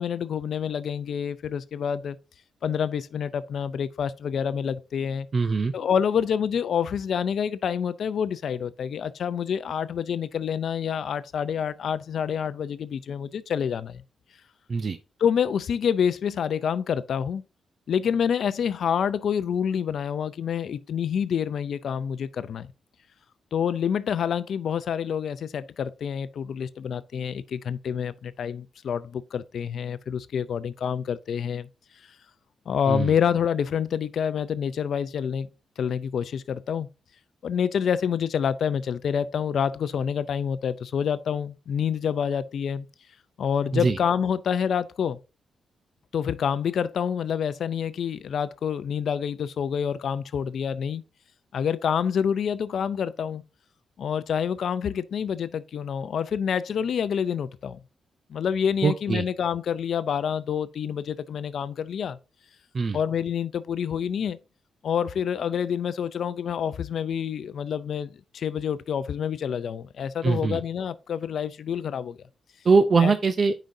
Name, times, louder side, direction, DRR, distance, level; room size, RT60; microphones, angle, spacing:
voice 1, 0.0-2.2 2.6-5.3 5.7-14.0 15.2-17.4 17.9-22.7 23.5-31.7 32.7-35.5 35.8-36.9 37.4-42.9 43.4-45.2 46.1-51.0 51.5-53.4 54.0-57.8 58.3-62.2 62.9-64.4 64.8-72.2 73.0-73.1, left 7 dB, 65° left, 0.4 m, -27 dB
voice 2, 5.3-5.7 14.7-15.0 32.9-33.1 43.7-44.0 58.8-59.2 62.7-63.0 70.2-70.6 72.6-73.5, right 4 dB, 40° right, 0.5 m, -22 dB
9.1 x 5.0 x 2.7 m
cardioid pair, 105°, 0 cm